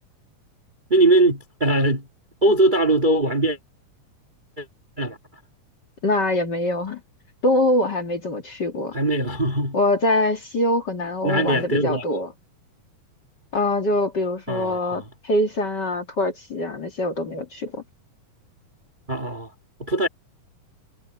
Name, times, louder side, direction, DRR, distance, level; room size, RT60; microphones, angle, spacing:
voice 1, 0.9-2.1 2.4-3.6 4.6-4.7 5.0-5.2 8.9-9.8 11.2-12.0 14.5-15.0 19.1-19.5 19.8-20.1, right 1 dB, 20° right, 1.3 m, -21 dB
voice 2, 6.0-7.0 7.4-8.9 9.7-12.3 13.5-17.8, left 1 dB, 35° left, 2.3 m, -23 dB
omnidirectional pair, 3.8 m